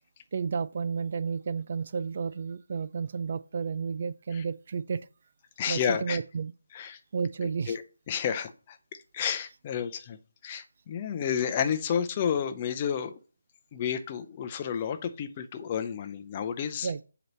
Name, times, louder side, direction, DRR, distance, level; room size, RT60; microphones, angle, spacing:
voice 1, 0.3-5.1 5.7-6.5 7.1-7.8 11.9-12.0 16.8-17.0, right 5 dB, 40° right, 0.3 m, -32 dB
voice 2, 5.6-6.2 6.7-7.0 7.7-7.8 8.1-8.8 9.1-10.2 10.4-13.2 13.7-16.9, left 8 dB, 25° left, 0.6 m, -31 dB
7.7 x 3.0 x 5.4 m
figure-of-eight pair, 155°, 0 cm